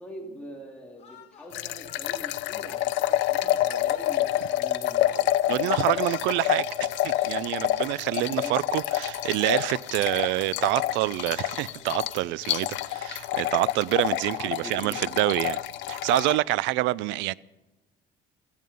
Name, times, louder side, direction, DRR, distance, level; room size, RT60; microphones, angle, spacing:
voice 1, 0.0-6.2 8.1-8.5 14.3-15.0, equal, 5° left, 2.7 m, -43 dB
sound 1, 1.0-3.1 3.3-15.3, left 5 dB, 35° left, 4.7 m, -52 dB
sound 2, 1.5-16.4, left 13 dB, 80° left, 0.7 m, -28 dB
voice 2, 5.5-15.6 15.9-17.3, right 18 dB, 90° right, 0.5 m, -27 dB
17.0 x 14.0 x 5.4 m
cardioid pair, 150°, 19 cm